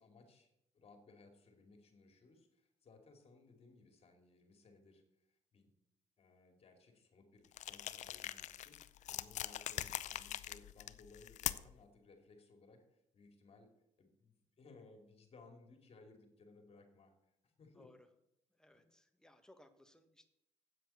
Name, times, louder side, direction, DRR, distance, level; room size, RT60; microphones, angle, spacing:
voice 1, 0.0-5.6 6.2-13.7 14.0-17.9 18.7-18.9, left 3 dB, 50° left, 5 dB, 2.5 m, -62 dB
sound 1, 7.5-11.8, left 12 dB, 65° left, 0.5 m, -43 dB
voice 2, 17.8-18.1 18.5-20.3, left 1 dB, 5° left, 7 dB, 1.4 m, -64 dB
8.4 x 7.7 x 6.9 m, 0.81 s
supercardioid pair, 75°, 13 cm